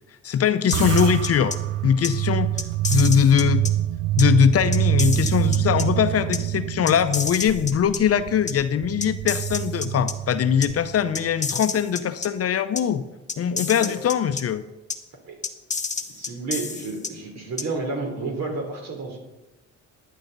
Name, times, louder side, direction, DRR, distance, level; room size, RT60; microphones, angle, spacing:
voice 1, 0.2-1.6 1.8-2.5 2.9-3.6 4.2-13.0 13.4-14.6, left 8 dB, 50° left, 11 dB, 0.7 m, -21 dB
sound 1, 0.7-1.6 2.0-2.1 2.6-3.7 4.2-4.3 4.7-5.8 6.3-6.4 6.9-8.0 8.5-8.6 9.0-10.1 10.6-10.7 11.1-12.3 12.8-12.9 13.3-14.4 14.9-15.0 15.4-17.1 17.6-17.7, left 5 dB, 25° left, 1.0 m, -29 dB
sound 2, 0.7-11.3, right 14 dB, 85° right, 0.5 m, -26 dB
voice 2, 15.8-19.2, right 3 dB, 60° right, 2 dB, 3.3 m, -31 dB
11.5 x 10.0 x 4.0 m, 1.1 s
cardioid pair, 90°, 30 cm